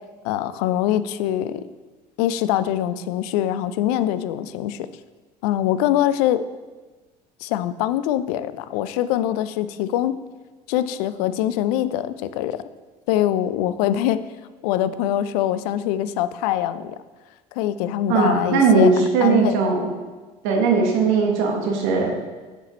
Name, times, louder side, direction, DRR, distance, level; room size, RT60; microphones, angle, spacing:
voice 1, 0.2-1.6 2.2-4.9 5.4-6.4 7.4-10.1 10.7-12.6 13.1-14.2 14.6-17.0 17.6-18.9 19.2-19.5, left 12 dB, 65° left, 13 dB, 0.5 m, -23 dB
voice 2, 18.1-19.9 20.4-22.2, right 4 dB, 65° right, 1 dB, 1.3 m, -19 dB
7.2 x 6.2 x 4.0 m, 1.3 s
hypercardioid pair, 65°, 21 cm